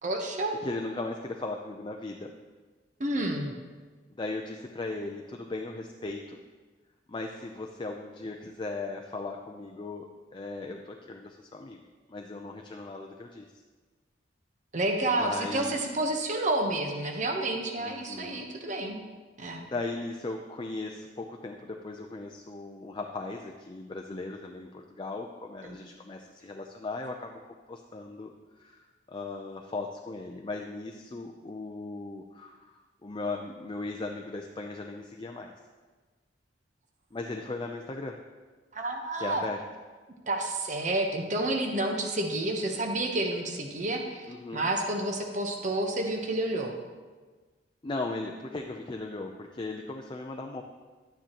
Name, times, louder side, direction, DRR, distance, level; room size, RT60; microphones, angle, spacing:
voice 1, 0.0-0.6 3.0-3.5 14.7-19.0 19.4-19.7 25.6-25.8 38.7-39.4 40.3-46.7, right 2 dB, 45° right, 2 dB, 1.0 m, -30 dB
voice 2, 0.6-2.3 4.1-6.4 7.1-13.5 15.2-15.8 17.8-18.5 19.7-27.4 27.7-35.5 37.1-38.2 39.2-39.6 44.3-44.6 47.8-50.6, left 3 dB, 25° left, 2 dB, 0.5 m, -37 dB
11.5 x 9.3 x 3.0 m, 1.4 s
head